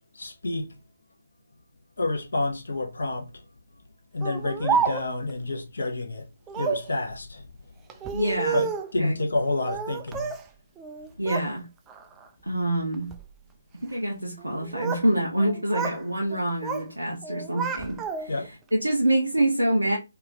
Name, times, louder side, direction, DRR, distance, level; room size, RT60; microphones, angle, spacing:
voice 1, 0.1-0.7 2.0-3.3 4.1-6.2 6.6-7.4 8.5-8.7 8.9-10.3 18.3-18.5, left 2 dB, 65° left, 0.9 m, -28 dB
Speech, 4.2-5.3 6.5-6.9 7.9-8.9 9.6-10.4 10.8-11.5 11.9-12.3 12.9-13.3 14.4-15.1 15.4-16.0 16.3-16.9 17.2-18.5, right 6 dB, 15° right, 0.3 m, -30 dB
voice 2, 8.1-8.7 9.0-9.2 11.2-11.7 12.4-13.1 13.7-20.0, right 1 dB, 85° right, 0.9 m, -26 dB
3.4 x 2.5 x 3.3 m
figure-of-eight pair, 140°, 0 cm